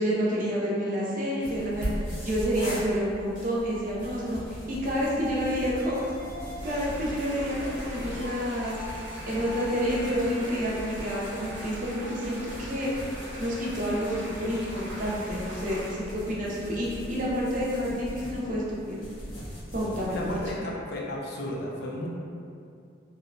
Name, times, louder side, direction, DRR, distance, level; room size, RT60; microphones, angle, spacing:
voice 1, 0.0-6.1 6.6-8.8 9.2-12.9 13.4-19.0 19.7-20.3, equal, 45° right, -5 dB, 0.5 m, -29 dB
sound 1, 1.4-20.5, equal, 80° left, 0.8 m, -40 dB
sound 2, 5.5-10.5, left 2 dB, 25° left, 0.8 m, -43 dB
sound 3, 6.6-15.9, equal, 80° right, 0.7 m, -42 dB
voice 2, 20.1-22.1, left 1 dB, 55° left, -3 dB, 0.4 m, -34 dB
2.7 x 2.0 x 2.5 m, 2.4 s
head